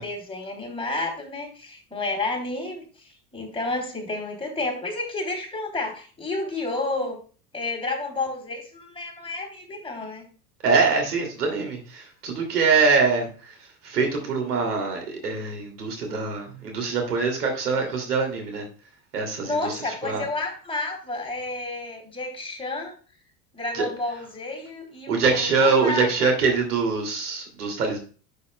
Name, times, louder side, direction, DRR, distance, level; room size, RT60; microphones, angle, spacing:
voice 1, 0.0-7.2 7.5-10.2 19.4-22.9 23.5-26.3, left 2 dB, 10° left, 1 dB, 3.1 m, -31 dB
voice 2, 10.6-13.6 13.8-18.7 19.1-20.2 23.7-23.9 25.1-28.0, right 4 dB, 75° right, 2 dB, 2.7 m, -24 dB
11.5 x 6.8 x 2.2 m, 0.38 s
figure-of-eight pair, 80°, 46 cm